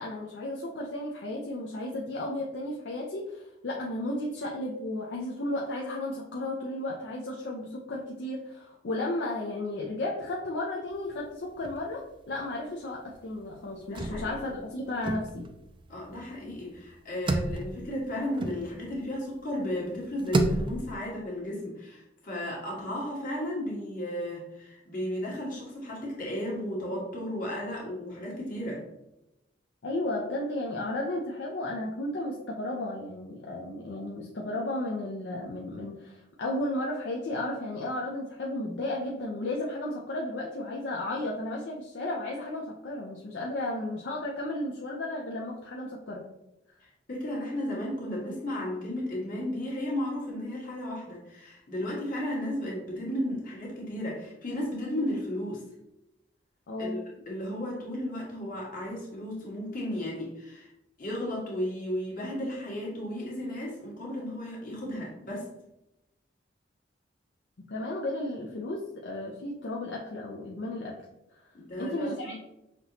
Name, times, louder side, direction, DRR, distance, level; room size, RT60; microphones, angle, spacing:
voice 1, 0.0-15.5 29.8-46.2 56.7-57.1 67.7-71.0 71.8-72.4, left 1 dB, 70° left, -2 dB, 0.6 m, -34 dB
sound 1, 10.9-12.2 12.4-12.5 12.8-19.2 19.7-21.0, right 2 dB, 30° right, 0.4 m, -32 dB
voice 2, 13.9-14.2 14.5-14.6 15.9-28.8 46.8-55.6 56.8-57.0 57.3-60.7 61.0-65.5 71.5-72.4, left 1 dB, 50° left, -4 dB, 1.5 m, -34 dB
5.9 x 2.9 x 2.8 m, 0.90 s
head